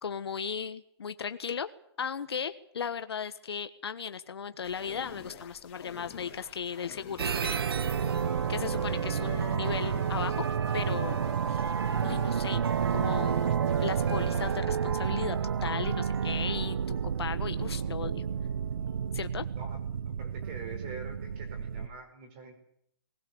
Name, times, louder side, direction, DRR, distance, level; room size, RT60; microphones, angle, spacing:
voice 1, 0.0-1.7 2.0-7.7 8.5-10.4 10.7-11.2 11.5-11.7 12.0-12.6 12.9-13.4 13.8-15.4 15.6-18.2 19.1-19.4, left 7 dB, 70° left, 10 dB, 1.4 m, -36 dB
sound 1, 4.6-14.6, left 8 dB, 20° left, 3.2 m, -49 dB
sound 2, 7.2-21.9, right 7 dB, 60° right, 1.2 m, -30 dB
voice 2, 20.2-22.6, right 4 dB, 20° right, 5 dB, 4.9 m, -44 dB
20.0 x 20.0 x 7.9 m, 0.71 s
hypercardioid pair, 180°, 14 cm